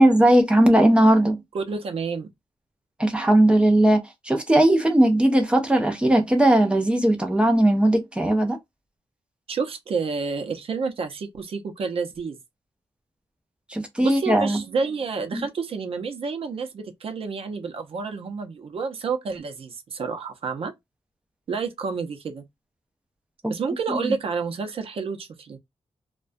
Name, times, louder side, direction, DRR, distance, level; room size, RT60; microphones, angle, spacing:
voice 1, 0.0-1.4 3.0-8.6 13.7-14.6 15.3-15.5 23.4-23.5 23.9-24.1, right 1 dB, 10° right, 0.5 m, -18 dB
voice 2, 1.5-2.3 9.5-12.4 14.0-20.7 21.5-22.4 23.5-25.6, right 5 dB, 60° right, 0.6 m, -29 dB
2.3 x 2.2 x 2.4 m
wide cardioid pair, 170°, 11 cm